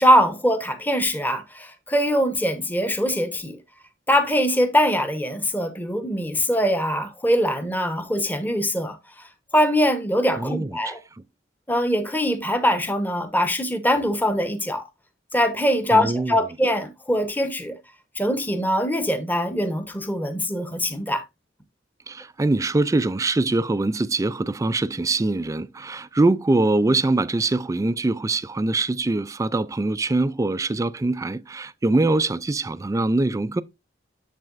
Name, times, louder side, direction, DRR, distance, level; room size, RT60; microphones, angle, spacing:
voice 1, 0.0-3.6 4.1-9.0 9.5-11.0 11.7-14.9 15.3-17.8 18.2-21.2, equal, 10° left, 0.9 m, -22 dB
voice 2, 10.4-10.9 15.9-16.4 22.1-33.6, right 2 dB, 15° right, 0.3 m, -23 dB
7.6 x 7.4 x 2.4 m
head